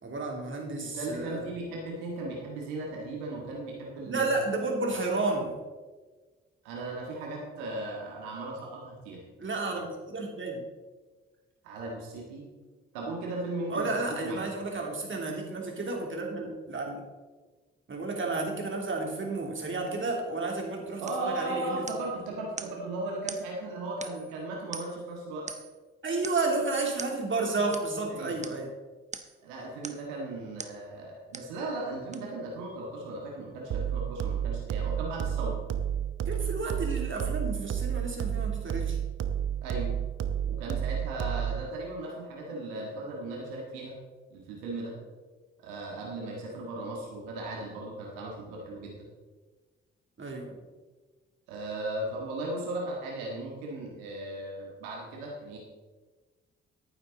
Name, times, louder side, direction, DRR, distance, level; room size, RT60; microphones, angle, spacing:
voice 1, 0.0-1.5 4.0-5.6 9.4-10.7 13.7-17.0 17.9-21.8 26.0-28.7 36.3-39.0 50.2-50.6, right 3 dB, 45° right, 0 dB, 3.2 m, -32 dB
voice 2, 0.8-4.3 6.6-9.2 9.7-9.8 11.6-12.5 12.9-13.9 14.2-14.4 21.0-25.5 28.1-28.3 29.4-35.6 39.6-40.0 40.4-44.0 44.3-45.0 45.6-49.1 51.5-55.6, right 2 dB, 90° right, -2 dB, 1.8 m, -37 dB
sound 1, 21.1-21.3 21.9-22.2 22.6-22.8 23.3-23.5 24.0-24.3 24.7-25.1 25.5-25.8 26.2-26.5 27.0-27.2 27.7-27.9 28.4-28.6 29.1-29.4 29.8-30.1 30.6-30.8 31.3-31.6 32.1-32.2, right 3 dB, 25° right, 1.1 m, -42 dB
sound 2, 33.7-41.7, right 9 dB, 60° right, 0.8 m, -31 dB
11.5 x 9.3 x 4.0 m, 1.3 s
hypercardioid pair, 45°, 29 cm